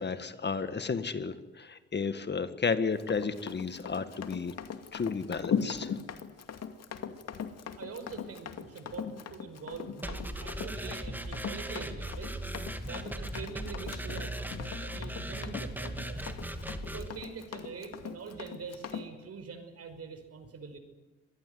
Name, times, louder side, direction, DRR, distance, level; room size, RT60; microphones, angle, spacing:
voice 1, 0.0-4.5 4.9-5.9, left 5 dB, 35° left, 11 dB, 1.7 m, -32 dB
Run, 3.0-19.1, left 7 dB, 55° left, 2.3 m, -39 dB
voice 2, 7.8-12.4 12.8-16.2 16.8-20.8, right 5 dB, 55° right, 8 dB, 5.5 m, -44 dB
sound 1, 10.0-17.1, right 1 dB, 5° right, 2.6 m, -38 dB
25.0 x 19.5 x 9.5 m, 1.2 s
cardioid pair, 90°, 30 cm